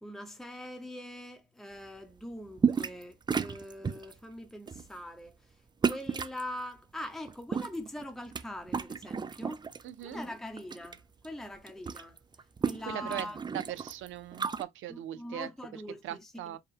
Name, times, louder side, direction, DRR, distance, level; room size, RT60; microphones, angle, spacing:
voice 1, 0.0-12.2 12.6-13.4 14.9-16.6, left 1 dB, ahead, 0.8 m, -43 dB
sound 1, 2.6-3.0 3.3-4.1 4.7-4.9 5.8-6.4 7.3-8.4 8.7-9.8 10.2-11.0 11.2-11.3 11.6-14.6, right 5 dB, 20° right, 0.4 m, -32 dB
voice 2, 9.8-10.2 12.9-13.3 13.5-15.5 16.0-16.6, right 12 dB, 80° right, 0.6 m, -39 dB
4.7 x 2.2 x 3.3 m
cardioid pair, 90°, 20 cm